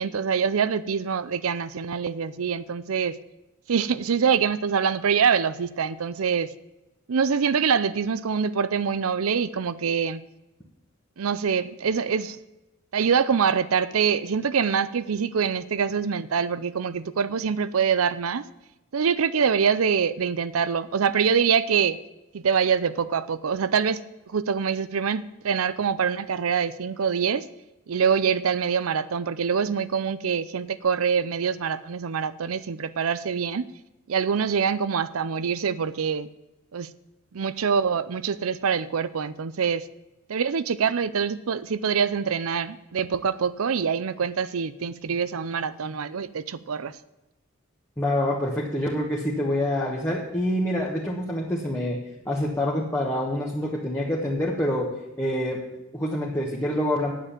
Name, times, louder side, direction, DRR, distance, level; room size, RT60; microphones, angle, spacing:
voice 1, 0.0-3.2 3.7-6.5 7.1-10.2 11.2-12.4 12.9-18.4 18.9-22.0 22.3-24.0 24.3-27.5 27.9-33.7 34.1-36.3 36.7-36.9 37.3-39.9 40.3-46.9, right 6 dB, 90° right, 15 dB, 0.5 m, -25 dB
voice 2, 48.0-57.1, left 1 dB, 10° left, -3 dB, 1.3 m, -26 dB
9.3 x 7.4 x 8.7 m, 0.97 s
head